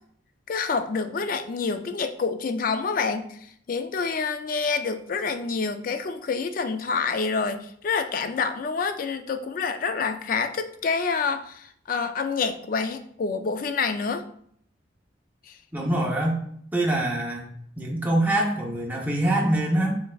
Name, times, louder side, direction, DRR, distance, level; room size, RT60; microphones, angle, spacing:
voice 1, 0.5-3.4 3.7-14.2 15.5-15.6, left 5 dB, 45° left, 9 dB, 0.3 m, -27 dB
voice 2, 15.7-16.4 16.7-17.4 17.8-20.0, right 1 dB, 10° right, -1 dB, 0.7 m, -24 dB
5.7 x 3.3 x 2.3 m, 0.65 s
head